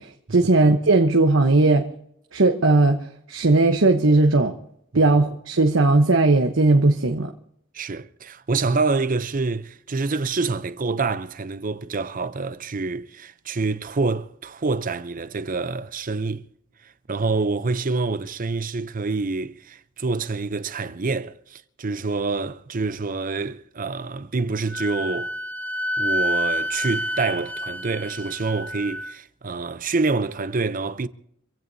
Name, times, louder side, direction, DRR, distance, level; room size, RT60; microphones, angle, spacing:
voice 1, 0.0-1.9 2.3-4.5 4.9-7.3, right 2 dB, 90° right, 1.1 m, -18 dB
voice 2, 7.7-16.4 17.1-25.3 26.0-31.1, right 3 dB, 45° right, 0.7 m, -26 dB
Wind instrument woodwind instrument, 24.7-29.1, equal, 10° left, 0.6 m, -28 dB
26.5 x 16.0 x 2.8 m
head